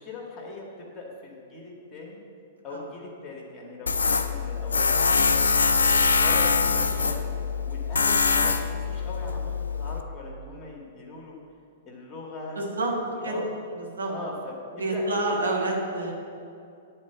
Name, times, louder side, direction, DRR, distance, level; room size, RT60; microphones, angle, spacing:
voice 1, 0.0-2.2 2.6-5.5 5.9-11.4 11.9-13.5 14.1-15.1 15.3-15.5, left 3 dB, 25° left, -1 dB, 2.0 m, -40 dB
Tools, 3.9-10.0, left 4 dB, 75° left, 0.5 m, -23 dB
voice 2, 12.5-12.9 13.2-13.4 13.7-14.1 14.7-16.1, right 2 dB, 75° right, -2 dB, 1.6 m, -28 dB
10.5 x 4.4 x 7.1 m, 2.5 s
figure-of-eight pair, 105°, 0 cm